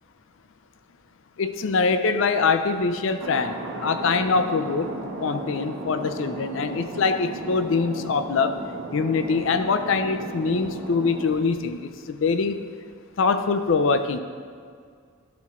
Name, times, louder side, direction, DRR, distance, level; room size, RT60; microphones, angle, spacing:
voice 1, 1.4-4.9 5.2-8.6 8.9-12.6 13.2-14.2, left 4 dB, 65° left, 9 dB, 0.4 m, -23 dB
Thunder, 3.2-11.3, right 1 dB, 80° right, 1.1 m, -35 dB
12.0 x 4.3 x 3.6 m, 2.1 s
head